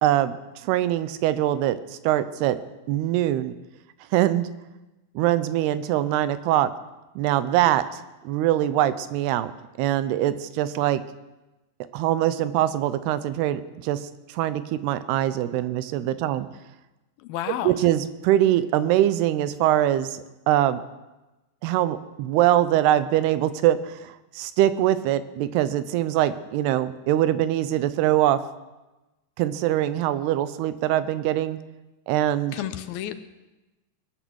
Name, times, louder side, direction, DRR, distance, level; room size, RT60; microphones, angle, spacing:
voice 1, 0.0-0.4 0.6-1.8 2.0-2.6 2.9-3.6 4.1-4.5 5.2-6.7 7.2-7.8 8.2-9.5 9.8-11.0 11.9-14.0 14.3-16.5 17.6-20.8 21.6-28.4 29.4-31.6 32.1-32.6, right 13 dB, 85° right, 14 dB, 2.8 m, -23 dB
voice 2, 17.2-17.8 32.5-33.1, left 12 dB, 75° left, 11 dB, 2.4 m, -31 dB
21.0 x 9.2 x 6.3 m, 1.1 s
omnidirectional pair, 4.5 m